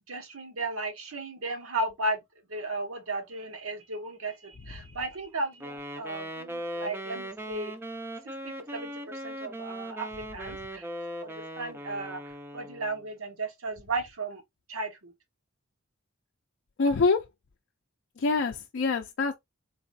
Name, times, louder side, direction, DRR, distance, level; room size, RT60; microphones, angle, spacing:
voice 1, 0.1-2.2 2.5-7.7 8.2-10.9 11.2-14.4 14.7-15.1, right 2 dB, 80° right, 1.1 m, -35 dB
Wind instrument woodwind instrument, 5.6-13.0, right 1 dB, 10° right, 0.4 m, -39 dB
voice 2, 16.8-17.2 18.2-19.4, left 4 dB, 55° left, 0.4 m, -25 dB
4.0 x 3.0 x 2.7 m
head